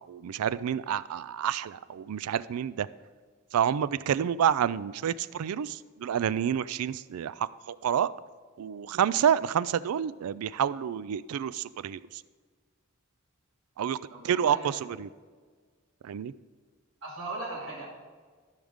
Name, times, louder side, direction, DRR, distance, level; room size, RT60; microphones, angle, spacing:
voice 1, 0.0-2.9 3.5-8.1 8.6-12.0 13.8-14.0 14.2-15.1 16.0-16.3, right 9 dB, 85° right, 17 dB, 0.3 m, -28 dB
voice 2, 14.1-14.8 17.0-17.9, right 2 dB, 60° right, -9 dB, 2.7 m, -38 dB
13.5 x 6.4 x 3.6 m, 1.5 s
head